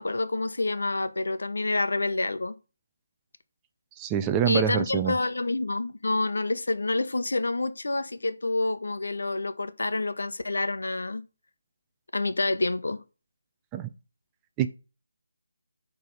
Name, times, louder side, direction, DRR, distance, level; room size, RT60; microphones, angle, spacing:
voice 1, 0.0-2.5 4.5-11.2 12.1-13.0, left 2 dB, 80° left, 0.9 m, -28 dB
voice 2, 4.0-5.1 13.7-13.9 14.6-14.7, right 9 dB, 15° right, 0.4 m, -26 dB
8.7 x 3.4 x 5.3 m
figure-of-eight pair, 165°, 0 cm